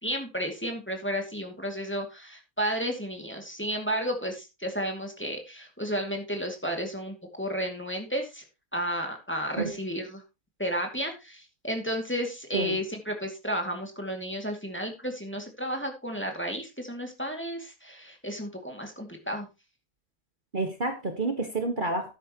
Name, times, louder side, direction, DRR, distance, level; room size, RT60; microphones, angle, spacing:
voice 1, 0.0-8.4 8.7-10.2 10.6-19.5, equal, 10° left, 2.3 m, -32 dB
voice 2, 20.5-22.1, right 2 dB, 35° right, 1.6 m, -29 dB
13.0 x 9.9 x 3.0 m
omnidirectional pair, 1.4 m